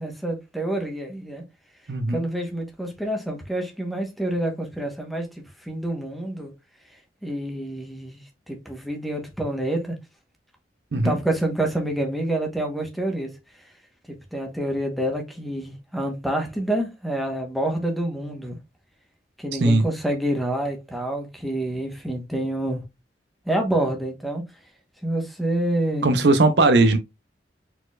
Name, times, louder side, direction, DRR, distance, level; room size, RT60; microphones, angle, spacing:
voice 1, 0.0-1.4 2.1-6.5 7.2-10.0 11.0-13.3 14.1-18.6 19.4-22.8 23.5-24.4 25.0-26.1, right 1 dB, ahead, 1.1 m, -27 dB
voice 2, 1.9-2.2 10.9-11.2 19.6-19.8 26.0-27.0, right 2 dB, 65° right, 0.6 m, -18 dB
4.3 x 4.2 x 2.4 m
head